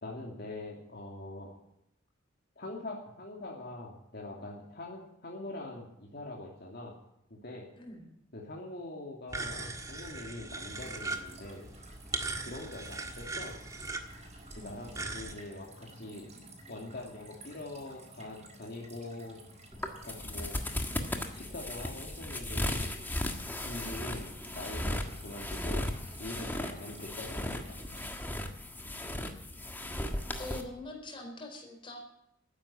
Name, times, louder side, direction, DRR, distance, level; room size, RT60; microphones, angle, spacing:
voice 1, 0.0-1.5 2.6-6.9 7.3-7.6 8.3-11.7 12.4-13.6 14.6-16.3 16.7-19.4 20.0-20.6 21.3-22.9 23.6-24.3 24.5-25.9 26.2-27.8, left 2 dB, 55° left, -1 dB, 2.7 m, -43 dB
voice 2, 7.8-8.1 14.5-14.8 29.8-29.9 30.4-32.0, left 2 dB, 25° left, 1 dB, 4.4 m, -44 dB
sound 1, 9.3-15.3, right 3 dB, 15° right, 1.5 m, -39 dB
sound 2, 10.7-28.1, right 2 dB, 35° right, 4.8 m, -53 dB
sound 3, 19.7-30.6, left 1 dB, 10° left, 1.6 m, -36 dB
13.5 x 10.0 x 8.7 m, 0.79 s
head